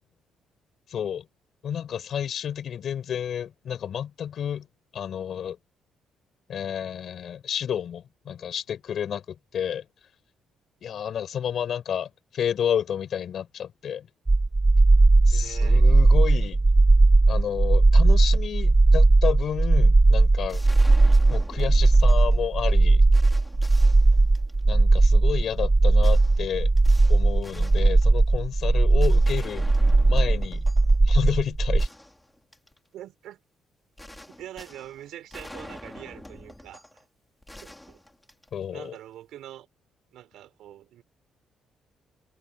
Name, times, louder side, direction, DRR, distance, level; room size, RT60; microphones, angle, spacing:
voice 1, 0.9-1.3 1.6-4.7 4.9-5.6 6.5-9.9 10.8-14.1 15.3-16.6 17.3-20.6 21.3-23.0 24.7-26.7 27.1-29.7 30.0-30.6 31.0-31.9 38.5-38.9, left 8 dB, 60° left, 6.0 m, -31 dB
sound 1, 14.3-31.9, right 2 dB, 20° right, 0.9 m, -18 dB
voice 2, 15.3-15.8 32.9-33.4 34.3-37.0 37.6-38.0 38.7-39.7 40.1-41.0, right 12 dB, 85° right, 4.6 m, -44 dB
sound 2, 20.5-22.4 22.8-22.9 23.1-24.8 26.0-28.4 29.0-31.0 31.3-31.4 31.8-32.8 34.0-37.0 37.4-38.7, left 1 dB, 10° left, 5.6 m, -45 dB
cardioid pair, 90°, 0 cm